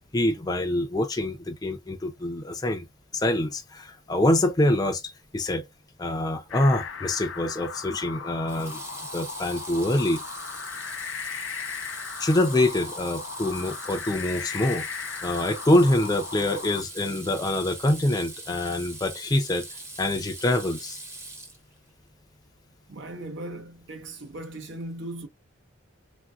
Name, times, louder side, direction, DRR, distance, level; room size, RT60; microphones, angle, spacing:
voice 1, 0.1-2.9 3.1-5.0 5.3-5.7 6.0-8.8 9.1-10.2 12.2-14.9 15.2-19.7 20.0-21.0, left 1 dB, 20° left, 0.4 m, -25 dB
sound 1, 6.5-16.8, left 6 dB, 70° left, 0.5 m, -37 dB
Water tap faucet / Sink (filling or washing), 6.8-7.2 8.5-21.9, right 2 dB, 15° right, 0.7 m, -41 dB
voice 2, 22.9-25.3, right 1 dB, 65° right, 0.6 m, -38 dB
3.3 x 2.5 x 2.3 m
head